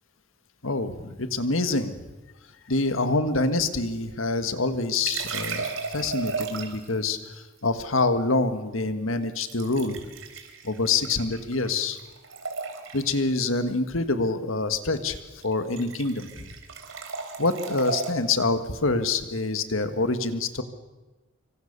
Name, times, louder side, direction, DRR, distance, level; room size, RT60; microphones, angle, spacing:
voice 1, 0.6-2.0 2.7-10.0 10.6-12.0 12.9-15.2 15.4-16.5 17.4-20.6, left 3 dB, 85° left, 10 dB, 1.8 m, -26 dB
sound 1, 4.9-7.0 9.4-11.7 12.0-13.2 14.9-15.2 15.4-18.1, right 4 dB, 85° right, 3.8 m, -34 dB
26.0 x 24.0 x 6.8 m, 1.1 s
head